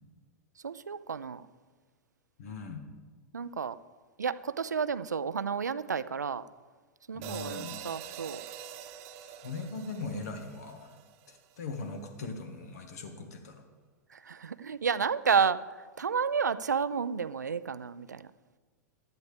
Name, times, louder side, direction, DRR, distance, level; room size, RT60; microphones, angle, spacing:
voice 1, 0.6-1.4 3.3-3.8 4.2-6.4 7.1-8.4 14.2-15.6 16.0-18.2, right 6 dB, 80° right, 16 dB, 0.5 m, -31 dB
voice 2, 2.4-2.8 7.1-7.7 9.2-10.9 11.3-13.6, left 3 dB, 65° left, 5 dB, 1.9 m, -40 dB
sound 1, 7.2-11.6, right 10 dB, 45° right, 1.0 m, -45 dB
16.0 x 11.5 x 3.5 m, 1.4 s
figure-of-eight pair, 95°, 9 cm